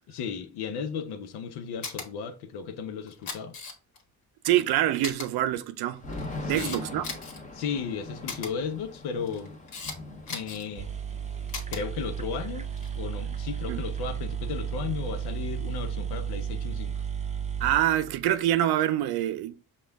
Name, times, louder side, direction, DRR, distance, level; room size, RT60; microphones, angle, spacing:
voice 1, 0.1-3.5 6.4-6.8 7.5-9.5 10.3-10.9 11.7-12.7 13.0-17.0, left 6 dB, 85° left, 0.7 m, -35 dB
Camera, 1.8-2.1 3.1-4.0 4.4-4.5 5.0-5.3 6.0-7.4 8.3-8.5 9.2-10.0 10.3-10.7 11.5-11.8 12.7-13.0, left 4 dB, 65° left, 1.5 m, -37 dB
voice 2, 4.4-6.0 6.5-7.2 13.7-13.8 17.6-19.5, right 12 dB, 80° right, 0.5 m, -25 dB
Thunder / Rain, 6.0-13.9 14.1-14.2 14.5-15.9, left 2 dB, 20° left, 1.2 m, -42 dB
sound 1, 10.5-10.6 10.8-18.6, right 8 dB, 20° right, 0.6 m, -33 dB
5.3 x 2.4 x 3.4 m
cardioid pair, 85°, 38 cm